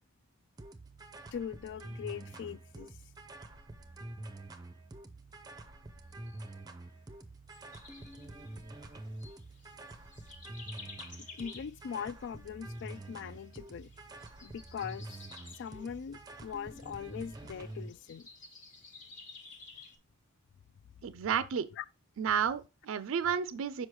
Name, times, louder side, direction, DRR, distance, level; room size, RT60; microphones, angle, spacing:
sound 1, 0.6-17.9, right 2 dB, 20° right, 0.5 m, -47 dB
voice 1, 1.3-3.0 11.4-13.9 14.4-15.1 15.6-18.3 21.7-21.8, left 7 dB, 60° left, 0.3 m, -41 dB
sound 2, 7.5-20.0, left 3 dB, 40° left, 1.3 m, -54 dB
voice 2, 21.0-21.7 22.2-23.9, right 7 dB, 70° right, 0.4 m, -31 dB
6.2 x 5.1 x 3.1 m
head